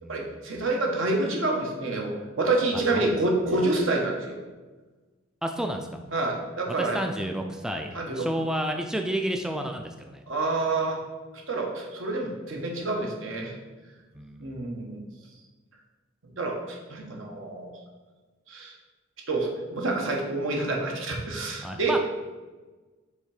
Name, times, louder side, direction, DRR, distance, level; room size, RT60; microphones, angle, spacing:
voice 1, 0.1-4.4 6.1-7.0 7.9-8.3 10.3-11.0 11.5-13.5 14.4-15.0 16.4-17.7 18.5-18.7 19.3-21.9, right 2 dB, 80° right, 0 dB, 1.2 m, -28 dB
voice 2, 5.4-5.9 6.7-7.9 8.2-10.2 14.1-14.5 21.6-22.0, right 1 dB, 5° right, 4 dB, 0.3 m, -31 dB
5.5 x 3.5 x 4.9 m, 1.3 s
head